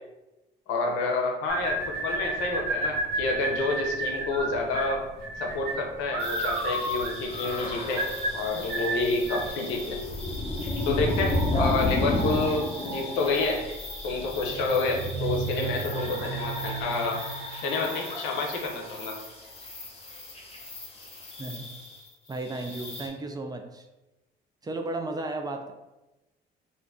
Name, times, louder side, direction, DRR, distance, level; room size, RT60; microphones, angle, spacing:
voice 1, 0.7-5.1 5.4-8.0 8.3-10.0 10.9-13.6 14.0-17.2 17.6-19.2, left 3 dB, 90° left, 1 dB, 0.6 m, -29 dB
sound 1, 1.5-9.5, right 2 dB, 60° right, 1.3 m, -31 dB
sound 2, 6.2-23.1, left 1 dB, 30° left, 0.8 m, -32 dB
voice 2, 21.4-21.8 22.3-23.9 24.6-25.7, right 2 dB, 20° right, 5 dB, 0.4 m, -34 dB
2.5 x 2.5 x 3.4 m, 1.0 s
supercardioid pair, 80°, 19 cm